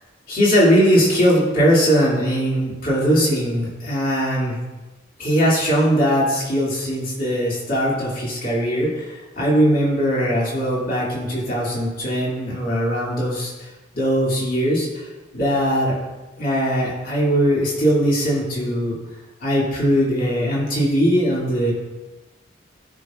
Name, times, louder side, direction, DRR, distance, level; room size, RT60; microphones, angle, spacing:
voice 1, 0.3-4.6 5.2-15.1 15.3-15.9 16.4-19.0 19.4-21.7, equal, 45° left, -5 dB, 2.5 m, -20 dB
16.0 x 5.9 x 2.5 m, 1.2 s
head